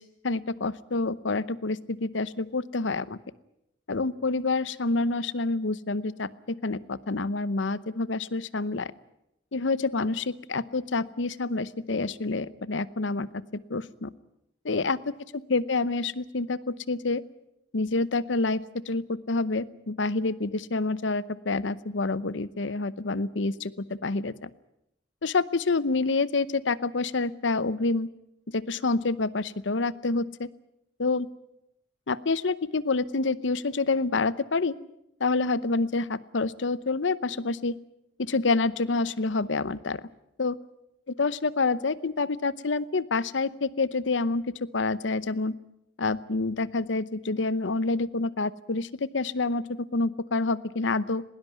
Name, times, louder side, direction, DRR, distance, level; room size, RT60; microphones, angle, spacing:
voice 1, 0.0-3.2 3.9-8.9 9.5-14.1 14.6-17.2 17.7-24.5 25.2-28.1 28.5-30.5 31.0-31.3 32.1-34.8 35.2-37.8 38.2-40.0 40.4-40.6 41.2-45.5 46.0-51.2, left 3 dB, 80° left, 18 dB, 0.8 m, -28 dB
20.0 x 19.0 x 9.4 m, 0.81 s
head